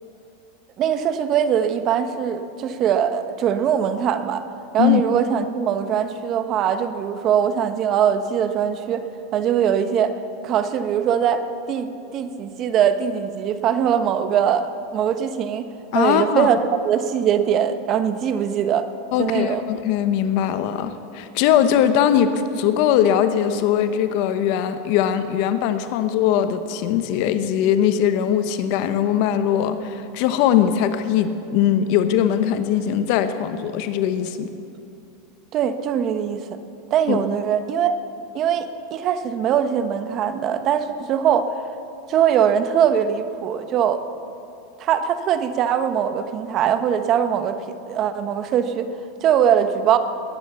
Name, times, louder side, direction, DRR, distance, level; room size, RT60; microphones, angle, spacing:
voice 1, 0.8-4.4 4.7-9.1 9.3-10.2 10.4-15.7 15.9-18.9 19.2-19.6 35.5-36.5 36.9-37.9 38.3-41.5 42.1-44.0 44.8-47.6 47.9-48.9 49.2-50.0, right 8 dB, 40° right, 10 dB, 1.1 m, -21 dB
voice 2, 15.9-16.5 19.1-34.5 37.1-37.2, left 9 dB, 60° left, 10 dB, 1.0 m, -20 dB
20.5 x 9.8 x 7.1 m, 2.7 s
supercardioid pair, 115°, 0 cm